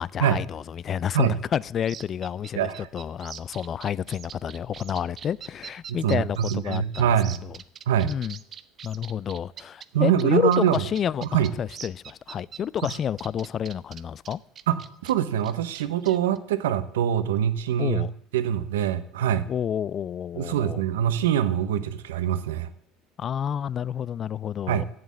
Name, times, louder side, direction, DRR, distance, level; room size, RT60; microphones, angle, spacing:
voice 1, 0.0-7.1 7.4-7.6 8.0-8.4 8.8-14.4 17.8-18.1 19.5-20.8 23.2-24.8, left 9 dB, 40° left, 0.3 m, -29 dB
sound 1, 1.8-9.9 10.2-10.3 10.5-15.1 15.4-16.4, right 8 dB, 45° right, 0.6 m, -42 dB
voice 2, 2.6-2.9 5.9-7.4 7.9-8.1 9.9-10.8 11.3-11.5 14.7-18.0 18.3-19.4 20.4-22.7 24.7-24.8, right 9 dB, 85° right, 0.8 m, -24 dB
8.2 x 7.6 x 8.5 m
hypercardioid pair, 85°, 0 cm